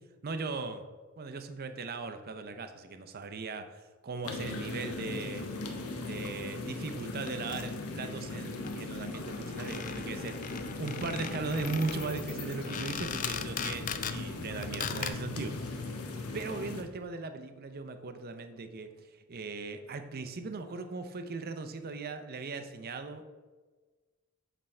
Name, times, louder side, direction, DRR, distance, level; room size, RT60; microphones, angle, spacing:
voice 1, 0.2-0.8 1.2-3.7 4.0-5.4 6.0-16.0 16.3-18.9 19.3-23.2, right 4 dB, 45° right, 8 dB, 0.5 m, -38 dB
sound 1, 4.2-16.8, left 2 dB, 75° left, 0.9 m, -38 dB
sound 2, 7.3-7.7 8.4-8.5 8.6-8.7 8.9-9.0 9.2-14.2 14.6-15.1, left 8 dB, 35° left, 0.4 m, -39 dB
7.6 x 4.5 x 4.2 m, 1.3 s
head